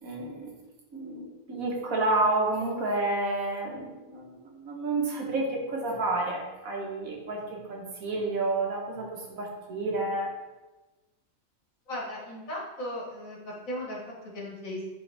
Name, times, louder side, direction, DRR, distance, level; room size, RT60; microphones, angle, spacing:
voice 1, 0.0-0.5 0.9-7.4 7.7-10.3, right 2 dB, 85° right, -1 dB, 1.8 m, -30 dB
voice 2, 11.9-14.8, left 1 dB, 75° left, -3 dB, 2.0 m, -37 dB
10.5 x 3.9 x 3.5 m, 1.2 s
omnidirectional pair, 1.4 m